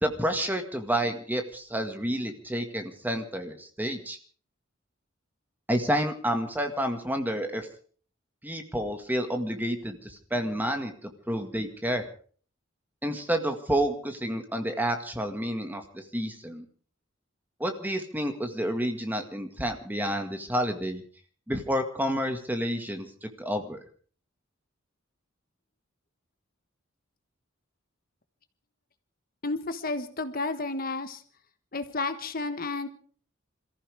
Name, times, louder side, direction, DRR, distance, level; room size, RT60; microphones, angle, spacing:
voice 1, 0.0-4.2 5.7-7.7 8.4-12.0 13.0-16.6 17.6-21.0 21.5-23.8, equal, 10° right, 5 dB, 1.9 m, -29 dB
voice 2, 29.4-31.2 31.7-32.9, left 3 dB, 45° left, 9 dB, 1.3 m, -31 dB
27.5 x 15.0 x 3.5 m, 0.43 s
head